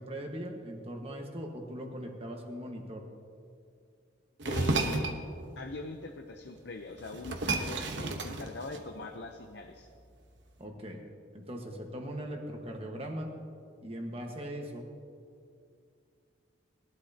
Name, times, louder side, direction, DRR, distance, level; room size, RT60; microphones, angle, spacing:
voice 1, 0.0-3.0 10.6-11.0 11.3-13.3 13.8-14.9, equal, 30° right, 1 dB, 1.4 m, -40 dB
voice 2, 4.4-5.2 5.6-9.9, left 3 dB, 65° left, 4 dB, 0.7 m, -41 dB
sound 1, 4.4-5.2 6.6-6.7 7.0-9.1, right 2 dB, 75° right, 1.1 m, -32 dB
20.5 x 12.0 x 2.9 m, 2.3 s
head